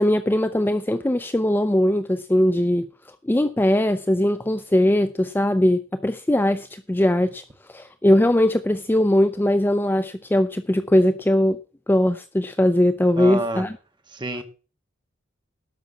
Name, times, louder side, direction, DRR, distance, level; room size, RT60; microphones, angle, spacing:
voice 1, 0.0-2.9 3.3-7.4 7.7-11.6 11.9-13.7, left 1 dB, 10° left, 0.4 m, -20 dB
voice 2, 13.2-13.6 14.1-14.4, right 1 dB, 25° right, 1.4 m, -28 dB
12.0 x 5.8 x 7.2 m
head